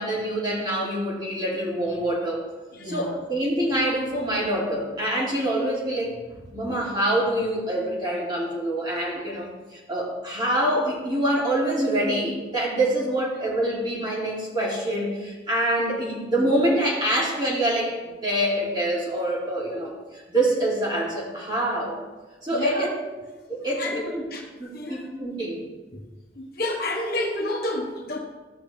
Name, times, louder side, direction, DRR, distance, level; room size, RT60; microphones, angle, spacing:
voice 1, 0.0-2.4 2.8-6.1 6.5-18.0 18.2-22.0 22.4-22.9 23.5-24.2 24.5-25.6, right 1 dB, 25° right, -7 dB, 3.2 m, -25 dB
voice 2, 2.7-3.1 22.5-22.9 23.8-24.4 24.7-25.0 25.9-26.1 26.3-28.2, left 1 dB, 55° left, 0 dB, 1.3 m, -30 dB
14.5 x 6.0 x 3.5 m, 1.2 s
head